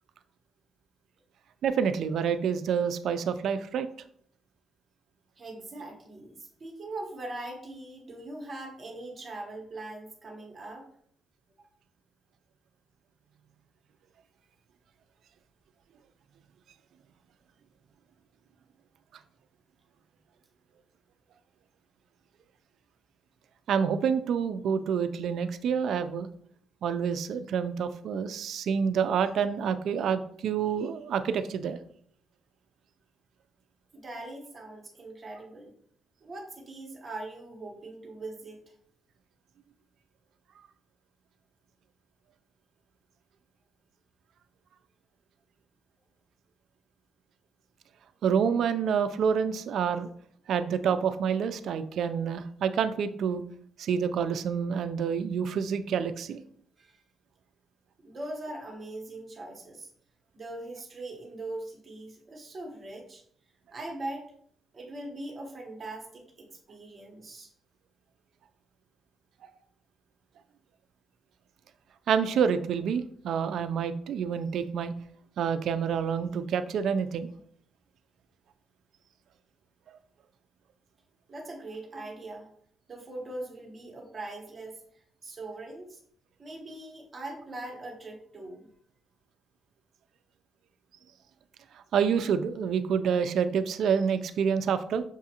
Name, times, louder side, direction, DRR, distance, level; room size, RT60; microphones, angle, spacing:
voice 1, 1.6-3.9 23.7-26.3 26.8-31.8 48.2-50.1 50.5-53.4 53.8-56.4 72.1-74.9 75.4-77.3 91.9-95.0, right 7 dB, 65° right, 11 dB, 0.3 m, -28 dB
voice 2, 5.4-10.9 11.6-11.7 33.9-35.7 36.2-38.7 56.8-57.0 58.0-59.9 60.3-63.2 63.7-64.3 64.7-67.5 81.3-82.5 82.9-84.8 85.2-86.0 86.4-88.6, right 2 dB, 30° right, 0 dB, 1.0 m, -41 dB
5.9 x 2.4 x 2.8 m, 0.64 s
cardioid pair, 140°, 0 cm